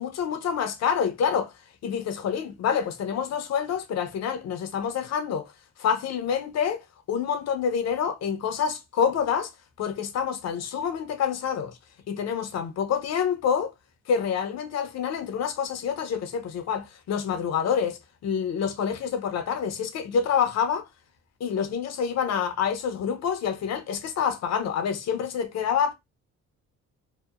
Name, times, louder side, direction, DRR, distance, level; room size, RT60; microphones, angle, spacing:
voice 1, 0.0-1.5 1.8-5.5 5.8-9.5 9.8-11.8 12.1-13.7 14.1-20.9 21.4-25.9, left 7 dB, 60° left, 0.6 m, -27 dB
2.8 x 2.1 x 2.3 m
cardioid pair, 90°, 30 cm